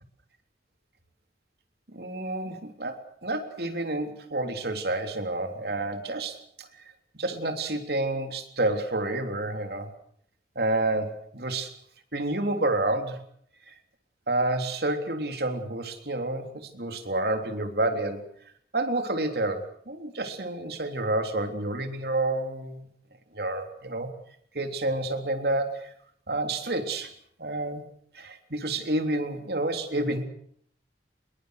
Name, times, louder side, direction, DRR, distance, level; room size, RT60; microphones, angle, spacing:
voice 1, 1.9-3.0 3.2-6.7 7.1-9.9 10.6-11.7 12.1-13.2 13.7-13.8 14.3-18.2 18.7-22.9 23.3-24.1 24.5-25.9 26.3-27.1 27.4-27.8 28.1-30.3, right 2 dB, 60° right, 6 dB, 3.5 m, -29 dB
27.0 x 22.5 x 6.6 m, 0.65 s
head